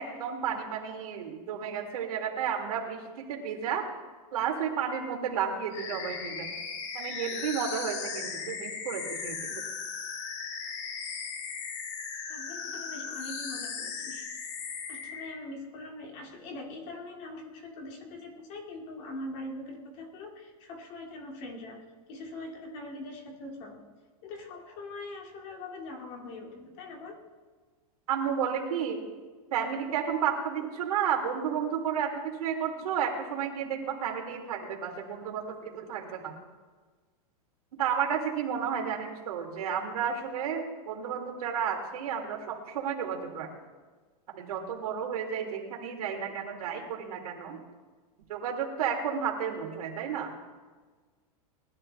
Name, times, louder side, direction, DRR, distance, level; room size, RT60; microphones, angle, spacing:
voice 1, 0.0-3.8 4.3-6.5 6.9-9.6 28.1-29.0 29.5-36.4 37.8-43.5 44.3-47.6 48.3-50.3, right 7 dB, 70° right, 1 dB, 2.9 m, -32 dB
sound 1, 5.7-15.4, left 5 dB, 50° left, 1.8 m, -37 dB
voice 2, 12.3-14.3 14.9-21.8 22.1-23.8 24.2-27.2 46.7-46.9, left 2 dB, 35° left, 1 dB, 2.3 m, -42 dB
20.0 x 11.5 x 3.4 m, 1.4 s
supercardioid pair, 170°, 19 cm